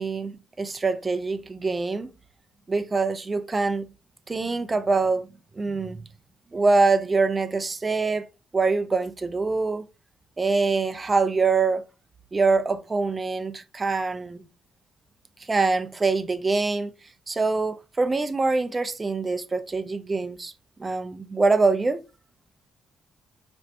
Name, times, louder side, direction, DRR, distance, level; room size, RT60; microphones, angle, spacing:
voice 1, 0.0-2.1 2.7-3.9 4.3-5.3 5.6-6.0 6.5-8.3 8.5-9.9 10.4-11.8 12.3-14.5 15.5-16.9 17.3-20.5 20.8-22.0, right 3 dB, 25° right, 0.4 m, -24 dB
4.3 x 2.6 x 2.6 m
cardioid pair, 90°, 0 cm